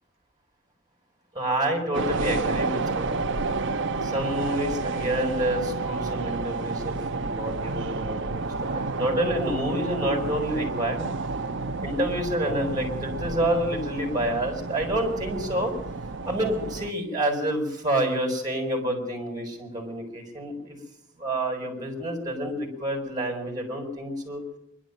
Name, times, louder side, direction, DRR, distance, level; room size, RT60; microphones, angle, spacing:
voice 1, 1.3-3.1 4.0-11.0 11.8-15.7 16.3-20.8 21.2-24.4, right 1 dB, 20° right, 3 dB, 7.3 m, -28 dB
sound 1, 1.9-16.9, right 3 dB, 65° right, 0.9 m, -30 dB
24.5 x 12.5 x 9.1 m, 0.79 s
head